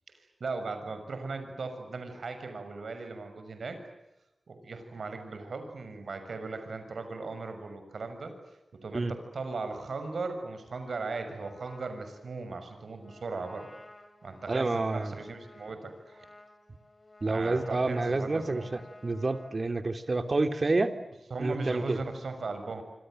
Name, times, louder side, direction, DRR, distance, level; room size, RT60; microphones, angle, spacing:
voice 1, 0.4-3.8 4.5-8.3 8.8-13.7 14.2-16.3 17.3-18.7 21.3-22.8, right 3 dB, 80° right, 8 dB, 6.4 m, -38 dB
Trumpet, 10.7-19.6, left 2 dB, 30° left, 5.6 m, -55 dB
voice 2, 14.5-15.2 17.2-20.9 21.4-22.0, right 3 dB, 45° right, 8 dB, 2.9 m, -28 dB
27.0 x 27.0 x 7.9 m, 0.96 s
wide cardioid pair, 75°, 0 cm